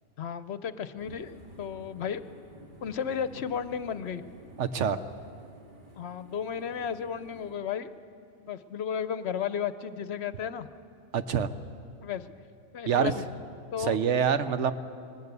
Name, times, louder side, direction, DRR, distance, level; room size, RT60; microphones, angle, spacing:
voice 1, 0.2-2.2 2.8-4.2 6.0-7.9 8.4-10.7 12.0-12.3 12.7-13.2 13.7-14.0, left 7 dB, 65° left, 12 dB, 0.9 m, -33 dB
sound 1, 0.9-7.6, equal, 40° right, 2.3 m, -52 dB
voice 2, 4.6-5.0 11.1-11.5 12.9-13.1 13.8-14.7, right 7 dB, 70° right, 11 dB, 1.1 m, -26 dB
20.0 x 19.0 x 8.1 m, 2.5 s
omnidirectional pair, 1.3 m